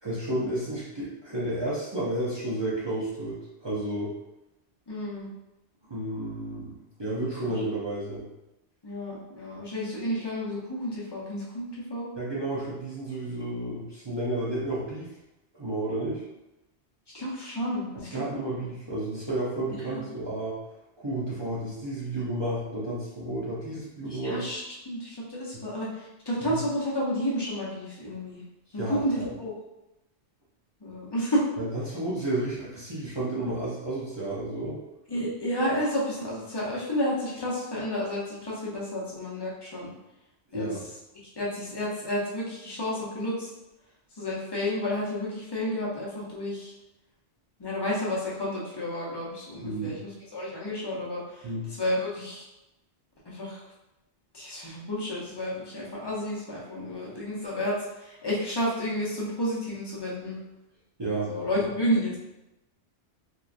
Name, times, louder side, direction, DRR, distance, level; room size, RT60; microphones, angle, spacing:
voice 1, 0.0-4.1 5.9-8.3 12.2-15.1 15.5-16.2 18.1-20.6 21.0-24.4 26.4-26.6 28.8-29.3 31.6-34.8 40.5-40.8 49.6-49.9 51.4-51.7 61.0-61.3, right 1 dB, 35° right, -8 dB, 0.4 m, -31 dB
voice 2, 4.9-5.3 7.4-7.6 8.8-12.1 17.1-18.2 19.9-20.0 24.1-28.4 28.7-29.5 30.8-31.4 35.1-39.9 40.5-40.7 41.4-43.5 44.2-46.7 47.6-52.4 53.3-53.6 54.3-60.4 61.3-62.2, equal, 30° left, -5 dB, 0.5 m, -31 dB
2.9 x 2.2 x 2.4 m, 0.94 s
omnidirectional pair, 1.1 m